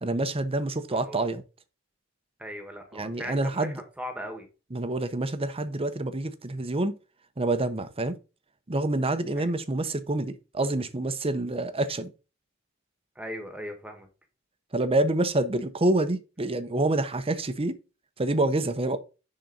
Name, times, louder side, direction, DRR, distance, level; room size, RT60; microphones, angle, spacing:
voice 1, 0.0-1.4 2.9-3.8 4.7-6.9 7.4-8.2 8.7-12.1 14.7-17.8 18.2-19.0, right 2 dB, 30° right, 0.8 m, -27 dB
voice 2, 0.9-1.3 2.4-4.5 9.3-9.5 13.1-14.1, equal, 5° right, 1.4 m, -39 dB
10.5 x 4.2 x 3.9 m
head